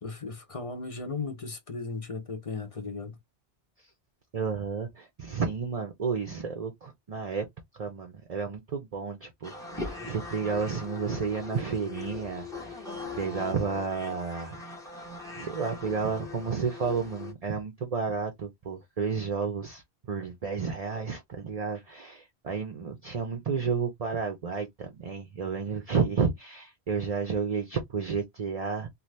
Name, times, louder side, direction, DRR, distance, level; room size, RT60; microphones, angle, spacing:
voice 1, 0.0-3.2, left 4 dB, 35° left, 0.7 m, -36 dB
voice 2, 4.3-7.5 7.7-12.9 13.2-14.6 15.4-19.8 20.1-28.9, right 5 dB, 40° right, 0.7 m, -31 dB
sound 1, 9.4-17.3, left 3 dB, 5° left, 0.9 m, -40 dB
2.7 x 2.5 x 3.2 m
omnidirectional pair, 1.1 m